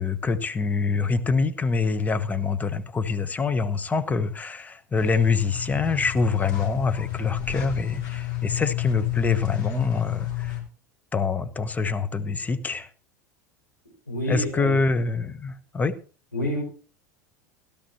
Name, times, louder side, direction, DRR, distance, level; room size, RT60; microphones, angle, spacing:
voice 1, 0.0-10.5 11.1-12.9 14.3-15.9, left 4 dB, 15° left, 1.0 m, -25 dB
sound 1, 5.0-10.6, left 13 dB, 50° left, 3.8 m, -30 dB
voice 2, 14.1-14.7 16.3-16.6, left 1 dB, 85° left, 5.2 m, -27 dB
17.0 x 12.0 x 2.9 m
figure-of-eight pair, 80°, 10 cm